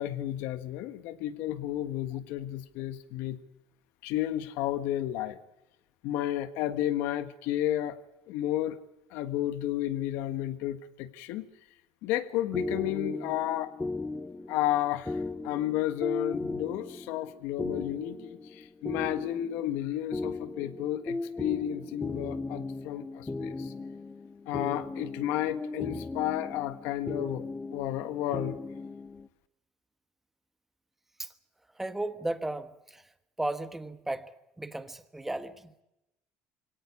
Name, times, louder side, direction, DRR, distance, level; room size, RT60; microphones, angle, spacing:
voice 1, 0.0-3.4 4.0-5.4 6.0-8.0 8.3-8.8 9.1-11.5 12.0-13.7 14.5-23.7 24.4-27.5 27.7-28.6, left 13 dB, 80° left, 1.5 m, -32 dB
sound 1, 12.5-29.3, left 3 dB, 15° left, 0.9 m, -37 dB
voice 2, 31.7-33.1 33.4-35.7, right 2 dB, 5° right, 1.3 m, -35 dB
23.5 x 17.5 x 9.6 m
cardioid pair, 125°, 4 cm